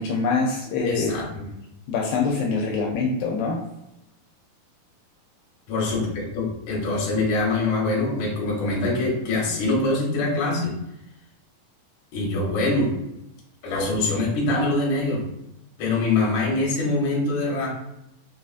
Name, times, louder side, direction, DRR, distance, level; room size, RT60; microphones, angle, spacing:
voice 1, 0.0-1.1 1.9-3.6, left 4 dB, 85° left, -1 dB, 2.2 m, -24 dB
voice 2, 0.8-1.4 5.7-10.8 12.1-12.9 13.6-15.2 15.8-17.7, left 2 dB, 65° left, -3 dB, 2.2 m, -24 dB
5.6 x 2.4 x 2.4 m, 0.87 s
omnidirectional pair, 4.0 m